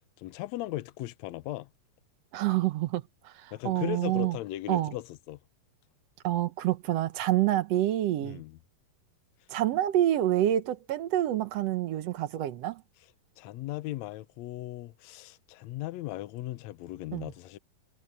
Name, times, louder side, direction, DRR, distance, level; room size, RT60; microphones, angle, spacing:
voice 1, 0.2-1.7 3.5-5.4 8.2-8.6 13.4-17.6, left 16 dB, 85° left, 1.5 m, -37 dB
voice 2, 2.3-3.0 3.4-4.4 4.7-4.9 6.2-8.4 9.5-12.8 17.1-17.3, right 13 dB, 70° right, 1.6 m, -27 dB
omnidirectional pair, 4.1 m